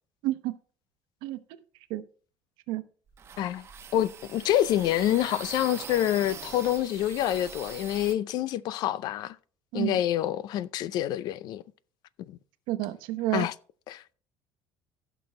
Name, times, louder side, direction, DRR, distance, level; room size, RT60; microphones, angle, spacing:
voice 1, 0.2-0.5 1.2-1.4 1.9-2.0 2.7-2.8 9.7-10.0 12.7-13.5, right 16 dB, 80° right, 0.9 m, -29 dB
sound 1, 3.1-8.1, right 7 dB, 35° right, 0.9 m, -43 dB
voice 2, 3.9-9.4 9.7-11.6 12.3-12.4 13.3-13.5 13.9-14.0, left 12 dB, 60° left, 0.5 m, -27 dB
15.5 x 6.1 x 3.2 m
cardioid pair, 135°, 8 cm